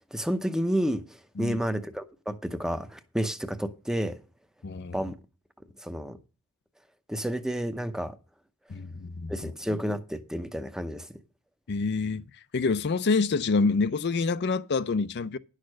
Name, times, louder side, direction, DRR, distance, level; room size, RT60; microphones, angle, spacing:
voice 1, 0.1-4.2 4.9-5.1 5.8-6.2 7.1-8.2 9.3-11.2, equal, ahead, 0.7 m, -30 dB
voice 2, 4.6-5.0 8.7-9.5 11.7-12.2 12.5-15.4, left 4 dB, 50° left, 0.5 m, -27 dB
10.5 x 6.5 x 6.3 m
head